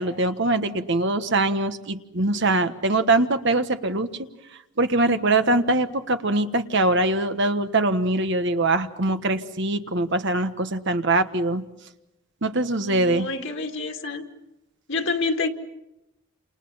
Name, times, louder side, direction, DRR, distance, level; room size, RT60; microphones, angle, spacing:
voice 1, 0.0-4.1 4.8-11.6 12.4-13.3, right 2 dB, 55° right, 8 dB, 1.4 m, -22 dB
voice 2, 12.8-14.2 14.9-15.5, left 3 dB, 60° left, 4 dB, 2.2 m, -28 dB
30.0 x 28.0 x 5.7 m, 0.93 s
head